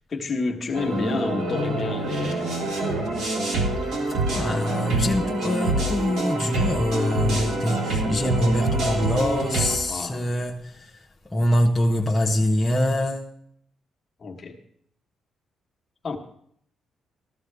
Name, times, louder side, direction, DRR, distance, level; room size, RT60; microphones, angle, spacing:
voice 1, 0.1-2.7 9.9-10.2 14.2-14.6 16.0-16.2, left 3 dB, 30° left, 1.4 m, -29 dB
sound 1, 0.7-9.8, right 2 dB, 65° right, 3.6 m, -26 dB
voice 2, 4.3-11.0 11.3-13.3, left 1 dB, 5° left, 0.7 m, -24 dB
14.5 x 13.5 x 3.4 m
cardioid pair, 180°, 0 cm